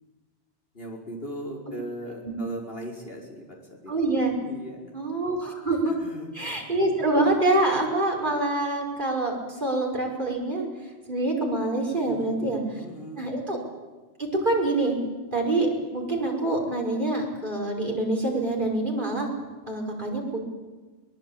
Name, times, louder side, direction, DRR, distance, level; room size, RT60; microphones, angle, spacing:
voice 1, 0.7-3.9 4.4-4.9 5.9-6.5 12.0-13.3, equal, 55° left, -1 dB, 5.5 m, -38 dB
voice 2, 3.9-4.3 4.9-5.9 6.3-10.6 11.1-12.6 13.2-13.6 14.2-15.0 15.3-19.3 19.7-20.4, right 2 dB, 45° right, -1 dB, 5.7 m, -26 dB
23.0 x 21.0 x 8.8 m, 1.3 s
omnidirectional pair, 1.2 m